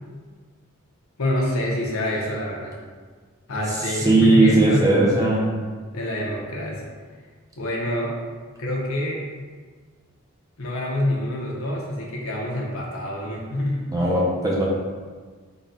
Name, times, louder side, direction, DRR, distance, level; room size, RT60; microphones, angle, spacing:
voice 1, 1.2-2.7 3.5-5.4 5.9-6.8 7.6-8.1 8.6-9.2 10.6-13.9, left 1 dB, 70° left, -3 dB, 0.8 m, -26 dB
voice 2, 3.9-5.5 13.9-14.6, right 2 dB, 15° right, -4 dB, 0.6 m, -18 dB
4.0 x 2.3 x 4.1 m, 1.5 s
head